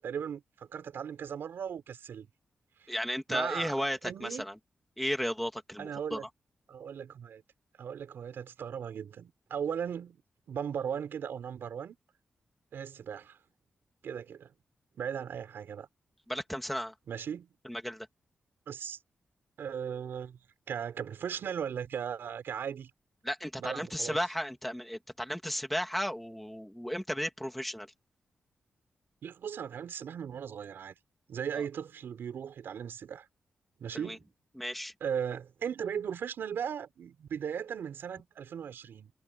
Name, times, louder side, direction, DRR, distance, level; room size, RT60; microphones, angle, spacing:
voice 1, 0.0-2.3 2.8-2.9 3.3-3.8 4.0-4.5 5.8-6.2 6.7-7.4 7.8-10.2 10.5-12.0 12.7-13.4 14.0-14.5 15.0-15.9 17.1-17.5 18.7-19.0 19.6-20.4 20.7-22.9 23.6-24.2 29.2-31.0 31.3-33.3 33.8-34.3 35.0-39.1, right 8 dB, 80° right, 5.4 m, -37 dB
voice 2, 2.9-4.5 5.0-6.2 16.3-16.9 17.6-18.1 23.2-27.9 34.0-34.2 34.6-34.9, equal, ahead, 2.9 m, -34 dB
wide cardioid pair, 170°, 4 cm